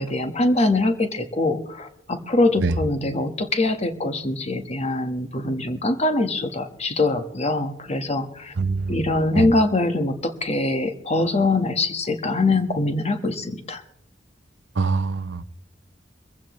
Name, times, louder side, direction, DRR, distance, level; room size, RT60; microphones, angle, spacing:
voice 1, 0.0-8.5 8.9-13.8, left 2 dB, 35° left, 1.4 m, -23 dB
voice 2, 8.6-9.1 9.3-9.5 14.8-15.4, right 4 dB, 75° right, 0.7 m, -24 dB
23.5 x 15.0 x 3.1 m
head